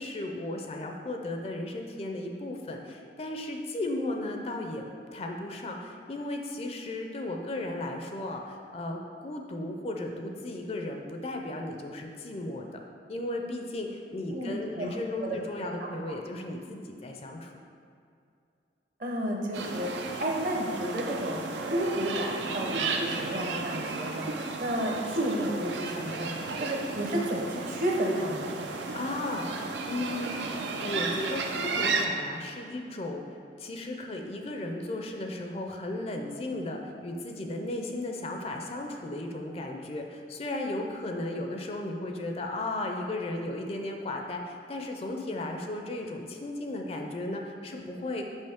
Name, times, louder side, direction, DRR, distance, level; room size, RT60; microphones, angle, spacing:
voice 1, 0.0-4.9 5.1-12.8 13.1-17.5 28.9-48.3, left 2 dB, 35° left, 2 dB, 0.4 m, -35 dB
voice 2, 14.3-14.9 15.2-15.4 19.0-21.4 21.7-26.3 26.6-28.6, right 1 dB, 50° right, 0 dB, 0.8 m, -31 dB
sound 1, 19.5-32.1, right 3 dB, 90° right, 0.5 m, -33 dB
5.7 x 5.4 x 3.5 m, 2.5 s
head